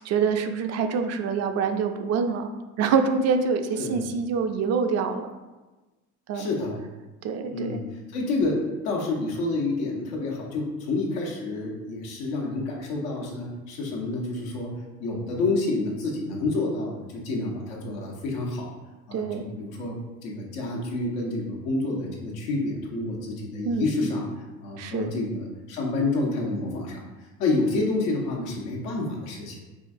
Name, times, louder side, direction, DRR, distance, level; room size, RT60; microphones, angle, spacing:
voice 1, 0.0-2.5 2.8-5.3 6.3-6.5 7.2-7.8 19.1-19.4 23.6-23.9 24.8-25.1, right 5 dB, 50° right, 6 dB, 0.4 m, -25 dB
voice 2, 6.3-6.9 7.5-8.6 8.8-14.7 15.0-18.7 19.1-19.9 20.2-24.3 24.6-27.0 27.4-29.6, left 2 dB, 85° left, -1 dB, 0.9 m, -29 dB
4.8 x 2.3 x 2.6 m, 1.2 s
supercardioid pair, 80°, 33 cm